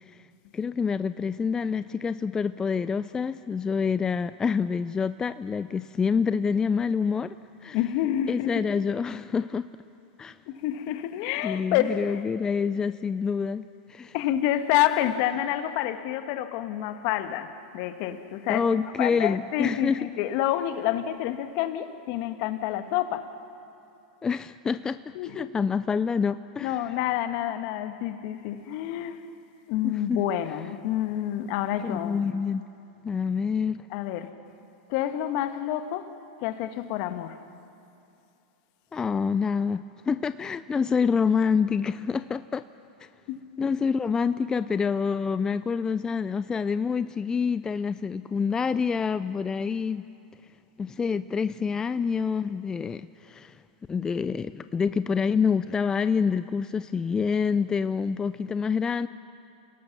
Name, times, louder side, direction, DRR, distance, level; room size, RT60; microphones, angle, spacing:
voice 1, 0.5-7.3 7.6-7.8 8.3-9.7 10.2-10.4 11.4-13.6 13.9-14.1 18.5-20.0 24.2-25.0 25.3-26.8 29.8-30.2 31.8-32.6 33.0-33.8 38.9-42.6 43.6-50.0 50.8-53.6 53.9-59.1, left 6 dB, 15° left, 0.4 m, -27 dB
voice 2, 7.7-8.7 10.5-12.2 14.1-18.6 19.0-23.3 25.1-25.6 26.6-29.3 29.7-32.2 32.5-32.6 33.9-34.3 34.9-36.1 36.4-37.4 43.3-43.4, left 12 dB, 55° left, 1.4 m, -28 dB
29.5 x 18.5 x 6.0 m
hypercardioid pair, 105°, 4 cm